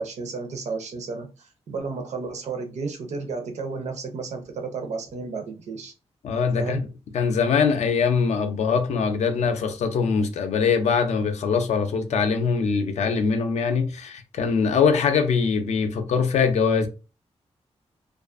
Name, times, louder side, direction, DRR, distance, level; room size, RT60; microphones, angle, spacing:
voice 1, 0.0-5.9 6.6-6.8, right 4 dB, 75° right, 0.6 m, -32 dB
voice 2, 6.2-6.8 7.1-16.9, left 5 dB, 75° left, 0.4 m, -22 dB
2.4 x 2.4 x 2.4 m
wide cardioid pair, 130°, 12 cm